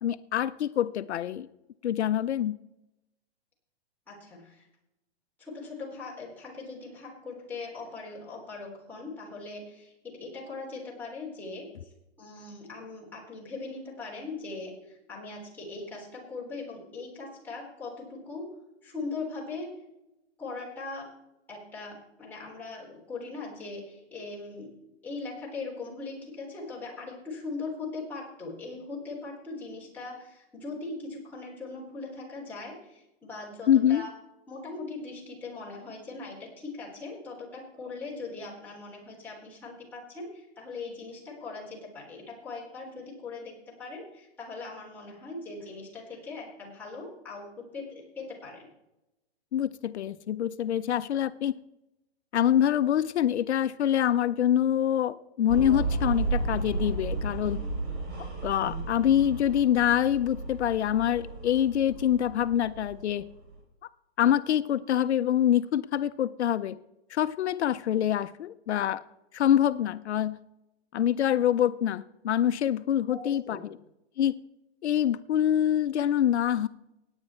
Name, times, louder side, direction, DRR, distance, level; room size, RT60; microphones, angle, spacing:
voice 1, 0.0-1.5 1.8-2.6 33.7-34.1 49.5-51.5 52.3-57.6 58.4-63.2 64.2-66.8 67.1-69.0 69.3-70.4 70.9-73.7 74.2-74.3 74.8-76.7, left 10 dB, 80° left, 14 dB, 0.6 m, -25 dB
voice 2, 4.1-4.7 5.4-11.9 12.2-18.5 18.8-19.7 20.4-21.1 21.5-24.7 25.0-34.1 34.5-48.7 73.1-73.6, left 3 dB, 5° left, -6 dB, 3.6 m, -40 dB
sound 1, 55.5-63.5, right 3 dB, 35° right, 3.9 m, -33 dB
17.5 x 9.0 x 4.3 m, 0.90 s
hypercardioid pair, 165°, 33 cm